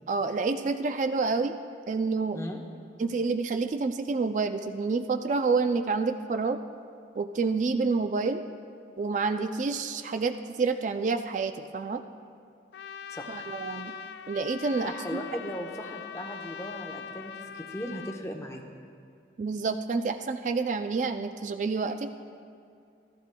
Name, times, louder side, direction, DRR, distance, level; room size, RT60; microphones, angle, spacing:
voice 1, 0.1-1.6 1.9-2.4 3.0-6.6 7.2-8.4 9.0-12.0 13.3-13.9 14.3-15.2 19.4-22.1, right 4 dB, 45° right, 7 dB, 0.3 m, -28 dB
Trumpet, 12.7-18.2, left 8 dB, 70° left, 0.3 m, -42 dB
voice 2, 13.1-13.5 14.8-18.6, equal, 15° left, 2 dB, 0.8 m, -38 dB
15.0 x 14.0 x 2.2 m, 2.3 s
head